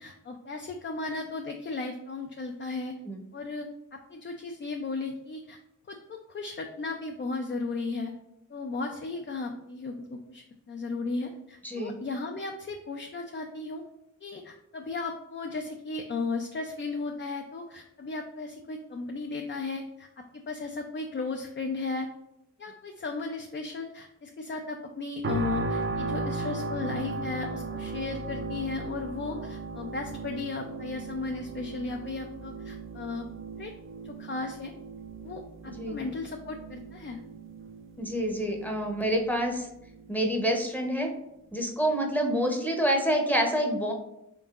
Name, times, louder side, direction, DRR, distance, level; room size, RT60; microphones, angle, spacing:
voice 1, 0.0-2.9 3.3-5.6 5.9-8.1 8.5-13.8 14.2-22.1 22.6-33.3 33.6-33.7 34.0-34.7 35.2-37.2, left 3 dB, 40° left, 3 dB, 0.4 m, -35 dB
voice 2, 11.6-11.9 35.8-36.0 38.0-39.7 40.1-41.1 41.5-43.9, equal, 5° left, 1 dB, 0.7 m, -27 dB
sound 1, 25.2-40.2 40.7-40.9, right 2 dB, 40° right, 0.4 m, -37 dB
3.8 x 3.7 x 2.4 m, 0.86 s
wide cardioid pair, 65°, 31 cm